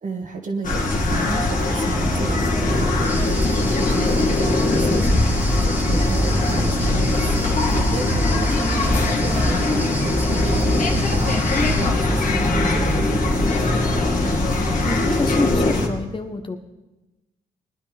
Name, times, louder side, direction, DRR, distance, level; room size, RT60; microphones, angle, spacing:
voice 1, 0.0-3.0 3.3-5.4 5.6-7.4 7.7-13.4, right 3 dB, 55° right, 2 dB, 1.8 m, -32 dB
sound 1, 0.6-15.9, left 2 dB, 55° left, 2.1 m, -20 dB
sound 2, 3.0-11.9, right 1 dB, 10° right, 1.0 m, -35 dB
voice 2, 14.8-16.6, left 3 dB, 30° left, 6 dB, 1.2 m, -27 dB
19.5 x 10.0 x 3.5 m, 1.1 s
supercardioid pair, 55°, 16 cm